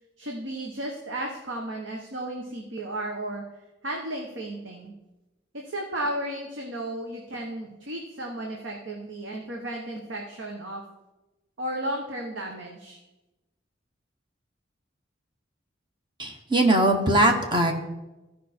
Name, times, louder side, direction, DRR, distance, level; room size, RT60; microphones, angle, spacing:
voice 1, 0.2-3.4 3.8-4.9 5.5-10.8 11.6-13.0, right 1 dB, 75° right, 1 dB, 1.0 m, -34 dB
voice 2, 16.2-17.7, right 1 dB, 25° right, 3 dB, 1.1 m, -21 dB
14.0 x 5.0 x 4.3 m, 1.0 s
head